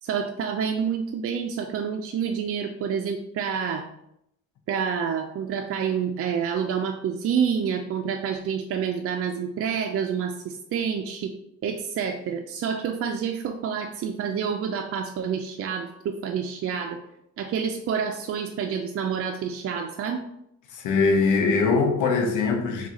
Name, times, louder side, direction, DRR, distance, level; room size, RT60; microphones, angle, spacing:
voice 1, 0.0-3.8 4.7-11.3 11.6-17.0 17.4-20.2, right 7 dB, 50° right, 0.4 m, -28 dB
voice 2, 20.7-22.9, left 4 dB, 85° left, 0.7 m, -22 dB
3.6 x 2.3 x 4.1 m
cardioid pair, 90°, 30 cm